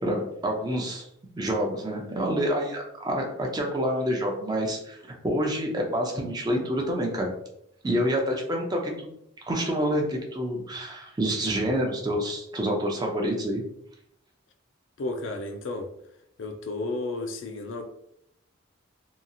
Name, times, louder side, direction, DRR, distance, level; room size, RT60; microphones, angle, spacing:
voice 1, 0.0-1.1 1.4-7.3 7.8-9.1 9.4-13.6, equal, 20° right, 1 dB, 0.4 m, -27 dB
voice 2, 15.0-15.9 16.4-17.8, left 2 dB, 70° left, 5 dB, 0.4 m, -32 dB
2.8 x 2.3 x 2.5 m, 0.75 s
head